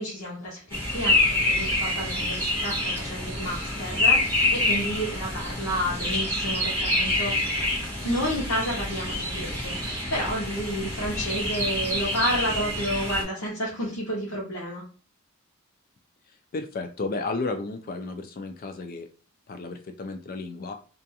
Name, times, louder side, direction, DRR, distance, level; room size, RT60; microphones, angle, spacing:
voice 1, 0.0-7.3 8.0-14.8, equal, 80° left, -6 dB, 0.8 m, -30 dB
sound 1, 0.7-13.2, left 2 dB, 10° left, 0.8 m, -27 dB
voice 2, 16.5-19.1 19.5-20.8, left 3 dB, 40° left, 7 dB, 0.3 m, -33 dB
2.4 x 2.4 x 2.6 m, 0.39 s
head